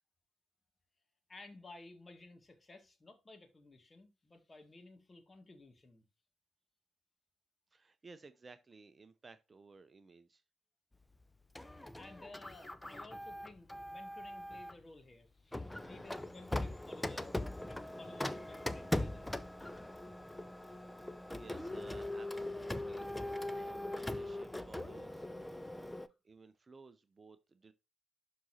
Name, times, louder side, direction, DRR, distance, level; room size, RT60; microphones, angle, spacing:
voice 1, 1.3-6.0 11.9-17.4 17.7-19.4, left 2 dB, 25° left, 2.1 m, -56 dB
voice 2, 7.7-10.4 21.3-23.1 23.5-25.3 26.2-27.7, right 3 dB, 30° right, 0.7 m, -57 dB
Printer, 11.6-14.8 15.5-26.1, left 1 dB, 10° left, 0.7 m, -41 dB
12.0 x 4.1 x 2.8 m
hypercardioid pair, 45°, 0 cm